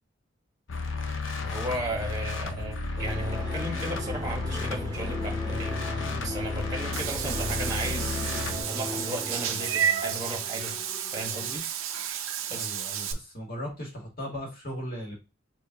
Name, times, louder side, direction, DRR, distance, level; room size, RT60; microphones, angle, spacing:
sound 1, 0.7-8.6, left 3 dB, 70° left, 0.6 m, -33 dB
voice 1, 1.4-5.8 6.2-8.2 8.7-10.7 11.1-11.6 12.5-12.7, right 1 dB, 20° right, 0 dB, 1.1 m, -35 dB
sound 2, 3.0-11.6, left 1 dB, 20° left, 2.1 m, -37 dB
Meow / Water / Bathtub (filling or washing), 6.9-13.1, right 8 dB, 75° right, 0.6 m, -31 dB
voice 2, 12.6-15.1, equal, 45° left, -1 dB, 1.8 m, -37 dB
6.4 x 2.3 x 2.8 m, 0.28 s
head